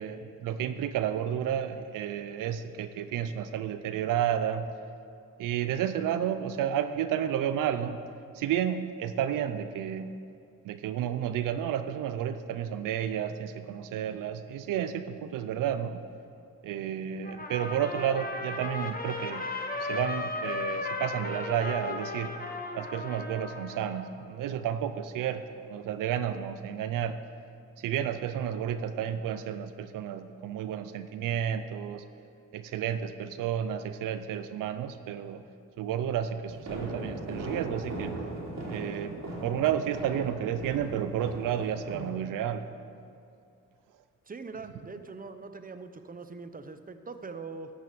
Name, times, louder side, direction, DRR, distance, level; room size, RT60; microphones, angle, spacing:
voice 1, 0.0-4.7 5.4-8.0 8.3-10.1 10.6-16.0 16.6-19.4 19.8-22.3 22.7-27.2 27.8-32.0 32.5-35.4 35.8-38.2 38.7-39.2 39.4-42.7, right 9 dB, 85° right, 11 dB, 0.5 m, -31 dB
Trumpet, 17.2-24.0, left 3 dB, 30° left, 1.3 m, -35 dB
sound 1, 36.5-42.1, right 1 dB, 60° right, 3.2 m, -38 dB
voice 2, 44.3-47.7, right 4 dB, 25° right, 10 dB, 0.8 m, -42 dB
12.5 x 6.3 x 6.8 m, 2.4 s
cardioid pair, 55°, 31 cm